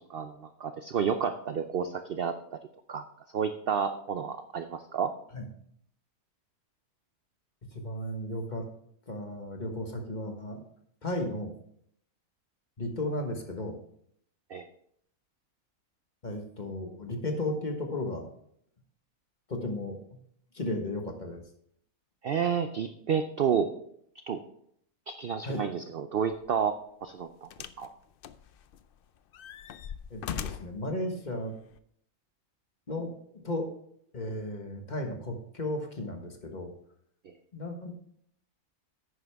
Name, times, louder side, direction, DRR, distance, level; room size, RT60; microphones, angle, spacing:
voice 1, 0.0-2.6 2.9-3.0 3.3-5.1 14.5-14.7 22.2-23.7 24.3-24.4 25.1-27.5 27.8-27.9, right 7 dB, 60° right, 9 dB, 0.6 m, -30 dB
voice 2, 7.7-8.7 9.1-10.6 11.0-11.5 12.8-13.8 16.2-18.3 19.5-20.0 20.5-21.4 25.4-25.6 30.1-31.5 32.9-33.1 33.4-33.7 34.1-36.7 37.5-38.0, left 1 dB, 30° left, 3 dB, 1.4 m, -34 dB
sound 1, 26.3-26.5 27.5-27.9 28.2-28.9 29.3-30.8 31.7-31.8, left 9 dB, 80° left, 0.5 m, -39 dB
11.0 x 9.3 x 3.5 m, 0.68 s
omnidirectional pair, 1.5 m